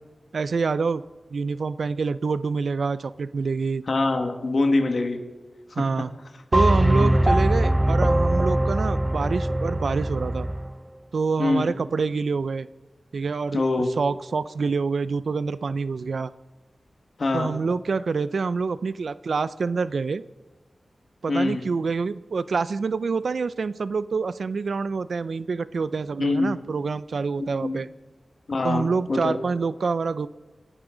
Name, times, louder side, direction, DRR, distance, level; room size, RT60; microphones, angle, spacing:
voice 1, 0.3-1.0 1.3-3.8 5.8-6.1 6.5-10.5 11.1-12.7 13.1-13.6 14.0-16.3 17.3-20.2 21.2-27.9 28.6-30.3, right 4 dB, 75° right, 16 dB, 0.4 m, -26 dB
voice 2, 3.9-5.2 7.0-7.2 11.4-11.7 13.5-13.9 17.2-17.5 21.3-21.7 26.2-26.5 27.4-27.8 28.5-29.4, left 2 dB, 60° left, 4 dB, 1.8 m, -24 dB
sound 1, 6.5-10.7, right 1 dB, 10° right, 0.4 m, -21 dB
27.5 x 11.0 x 3.9 m, 1.3 s
wide cardioid pair, 105°, 0 cm